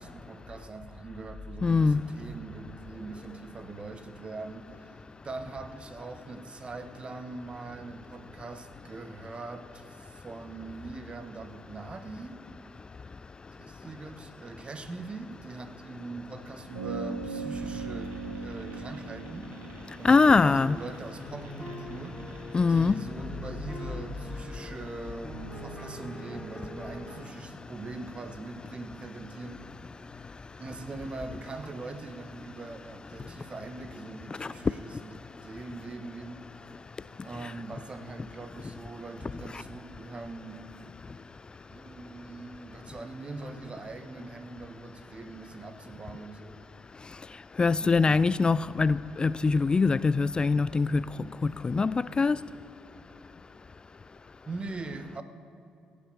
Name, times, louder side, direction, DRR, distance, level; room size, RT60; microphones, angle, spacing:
voice 1, 0.0-12.4 13.6-19.5 20.0-22.2 22.6-29.7 30.6-36.4 37.2-40.9 41.7-46.6 47.8-48.4 54.4-55.2, right 3 dB, 35° right, 1.3 m, -42 dB
voice 2, 1.6-2.1 20.0-20.8 22.5-23.1 34.3-34.7 37.4-37.5 39.5-39.6 47.0-52.5, left 4 dB, 30° left, 0.3 m, -24 dB
sound 1, 16.7-21.5, right 4 dB, 90° right, 2.3 m, -38 dB
sound 2, 17.5-23.0, right 3 dB, 65° right, 2.6 m, -50 dB
sound 3, 21.2-27.2, equal, 10° left, 4.1 m, -43 dB
16.5 x 8.7 x 7.0 m
hypercardioid pair, 50°, 3 cm